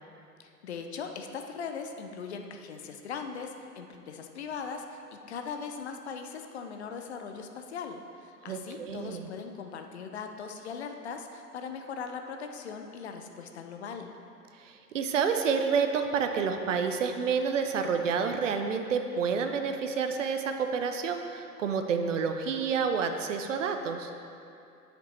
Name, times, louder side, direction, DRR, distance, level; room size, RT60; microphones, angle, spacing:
voice 1, 0.4-14.1, left 5 dB, 45° left, 5 dB, 0.6 m, -40 dB
voice 2, 8.5-9.3 14.6-24.1, right 6 dB, 55° right, 6 dB, 0.6 m, -29 dB
10.0 x 5.0 x 3.2 m, 2.6 s
figure-of-eight pair, 105°, 47 cm